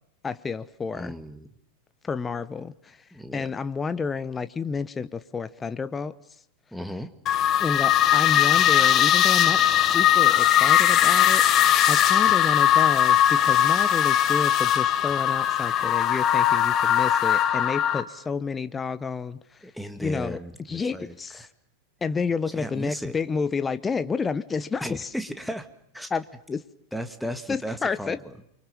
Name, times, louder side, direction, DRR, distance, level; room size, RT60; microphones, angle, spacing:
voice 1, 0.2-1.2 2.0-3.0 3.3-6.1 7.6-19.4 20.0-20.4 20.7-21.4 22.0-25.1 26.1-26.6 27.5-28.2, left 5 dB, 15° left, 14 dB, 1.1 m, -30 dB
voice 2, 0.9-1.5 3.1-3.5 6.7-7.1 19.6-21.5 22.6-23.2 24.8-25.7 25.9-26.1 26.9-28.3, equal, ahead, 8 dB, 2.1 m, -35 dB
sound 1, 7.3-18.0, left 11 dB, 30° left, 1.6 m, -20 dB
29.5 x 24.5 x 7.2 m, 0.72 s
figure-of-eight pair, 90°, 0 cm